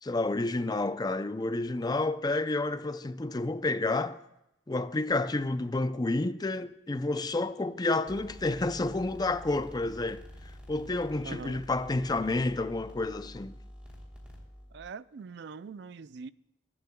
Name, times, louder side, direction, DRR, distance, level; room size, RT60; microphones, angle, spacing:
voice 1, 0.0-4.2 4.7-13.6, left 2 dB, 20° left, 0.5 m, -30 dB
sound 1, 8.1-14.9, equal, 5° right, 3.0 m, -48 dB
voice 2, 11.2-11.6 14.7-16.3, right 5 dB, 65° right, 0.4 m, -43 dB
23.0 x 12.0 x 2.3 m
head